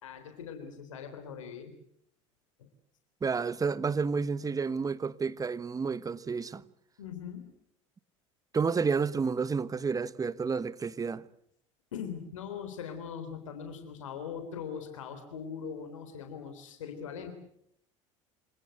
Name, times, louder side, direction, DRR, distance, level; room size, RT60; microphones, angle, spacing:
voice 1, 0.0-1.7 7.0-7.4 11.9-17.3, left 7 dB, 80° left, 3.6 m, -41 dB
voice 2, 3.2-6.6 8.5-11.2, right 5 dB, 20° right, 1.1 m, -30 dB
27.0 x 19.0 x 8.2 m
hypercardioid pair, 75°, 16 cm